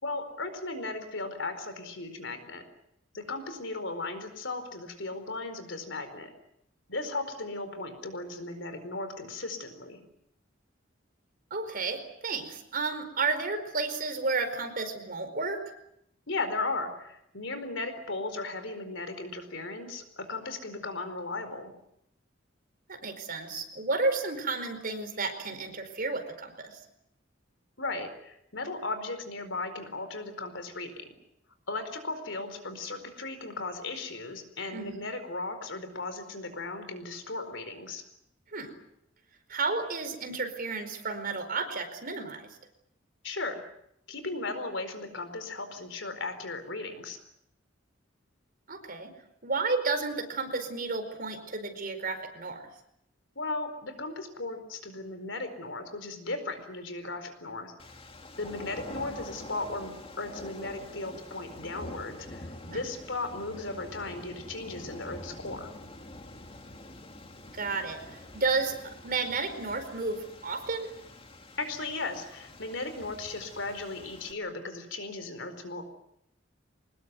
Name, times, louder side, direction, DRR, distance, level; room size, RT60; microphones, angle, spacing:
voice 1, 0.0-2.6 3.1-6.3 6.9-10.0 16.3-21.7 27.8-31.1 31.7-38.0 43.2-43.6 44.1-47.2 53.3-57.8 58.4-65.7 71.6-75.8, left 3 dB, 70° left, 9 dB, 4.6 m, -36 dB
voice 2, 11.5-15.6 22.9-26.8 34.7-34.9 38.5-38.8 39.5-42.5 48.7-49.1 49.4-52.6 62.7-62.8 67.5-68.8 69.0-70.9, right 3 dB, 50° right, 8 dB, 4.7 m, -32 dB
sound 1, 57.8-74.3, left 1 dB, 30° left, 2.6 m, -46 dB
24.5 x 20.5 x 9.6 m, 0.76 s
head